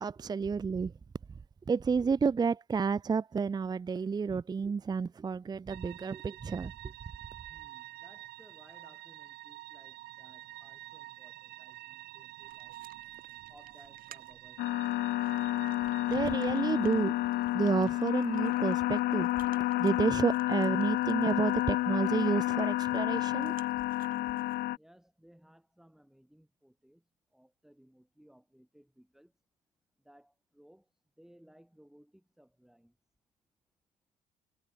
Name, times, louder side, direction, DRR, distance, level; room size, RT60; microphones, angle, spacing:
voice 1, 0.0-0.9 1.7-6.7 16.1-17.1 17.5-23.5, right 5 dB, 25° right, 0.7 m, -30 dB
sound 1, 5.7-22.7, right 16 dB, 80° right, 2.3 m, -50 dB
voice 2, 7.5-12.8 13.5-14.7 24.1-27.0 27.3-29.3 30.0-30.9 31.2-32.9, equal, ahead, 6.9 m, -61 dB
sound 2, 12.4-24.6, right 10 dB, 55° right, 5.0 m, -59 dB
sound 3, 14.6-24.8, left 16 dB, 70° left, 0.6 m, -30 dB
cardioid pair, 110°, 17 cm